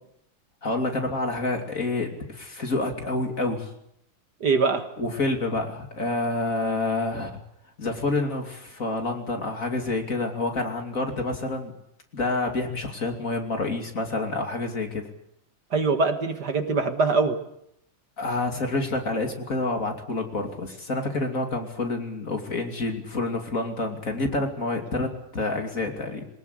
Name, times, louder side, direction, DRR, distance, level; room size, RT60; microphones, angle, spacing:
voice 1, 0.6-3.7 5.0-7.3 7.8-11.7 12.1-15.0 18.2-26.3, left 2 dB, 40° left, 4 dB, 3.2 m, -28 dB
voice 2, 4.4-4.8 15.7-17.4, right 4 dB, 55° right, 7 dB, 2.2 m, -23 dB
23.0 x 20.0 x 8.4 m, 0.77 s
omnidirectional pair, 2.2 m